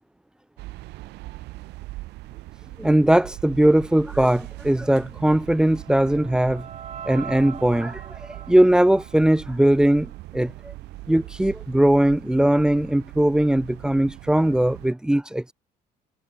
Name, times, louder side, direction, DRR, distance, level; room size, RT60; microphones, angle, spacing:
sound 1, 0.6-14.9, right 19 dB, 90° right, 3.7 m, -41 dB
voice 1, 2.8-6.7 7.0-10.7 11.1-15.5, right 1 dB, 5° right, 0.4 m, -20 dB
sound 2, 5.1-10.3, right 8 dB, 40° right, 1.5 m, -42 dB
cardioid pair, 110°, 17 cm